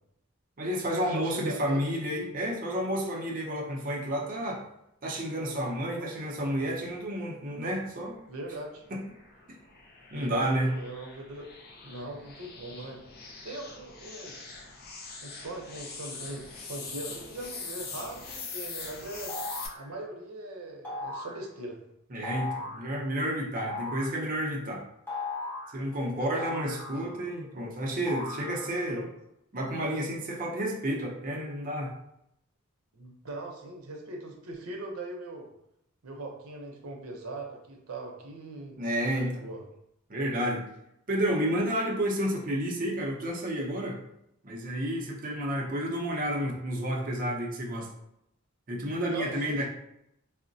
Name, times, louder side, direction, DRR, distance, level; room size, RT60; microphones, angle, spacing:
voice 1, 0.6-4.6 5.0-8.2 8.9-9.0 10.1-10.7 22.1-24.8 25.7-29.0 29.5-31.9 38.8-39.5 40.1-40.6 41.1-44.0 44.4-47.9 48.7-49.7, equal, 40° right, -1 dB, 0.5 m, -30 dB
voice 2, 1.1-1.9 6.0-6.1 8.3-8.8 10.1-11.5 11.8-13.0 13.4-14.5 15.2-19.3 19.7-21.8 26.1-26.6 26.9-27.1 28.9-29.1 32.9-35.5 36.0-38.8 39.3-39.6 49.1-49.7, right 2 dB, 85° right, 1 dB, 0.6 m, -40 dB
sound 1, 8.1-19.7, left 4 dB, 45° left, 0.4 m, -43 dB
sound 2, 19.3-19.8 20.8-21.4 22.2-22.8 23.6-24.2 25.1-25.8 26.4-27.3 28.1-28.9, left 2 dB, 10° left, 0.9 m, -37 dB
3.6 x 2.1 x 2.6 m, 0.79 s
head